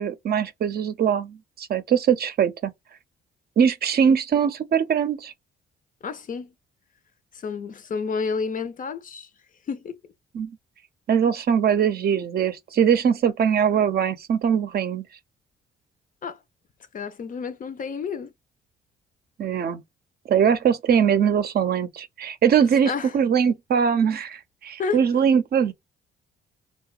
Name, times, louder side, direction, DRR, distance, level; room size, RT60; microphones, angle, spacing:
voice 1, 0.0-2.7 3.6-5.3 10.3-10.5 11.1-15.0 19.4-19.8 20.3-25.7, right 7 dB, 50° right, 0.5 m, -21 dB
voice 2, 6.0-6.5 7.3-9.3 9.7-9.9 16.2-16.4 16.9-18.3 22.9-23.2 24.8-25.0, left 5 dB, 40° left, 0.5 m, -30 dB
2.7 x 2.2 x 2.3 m
cardioid pair, 90°, 20 cm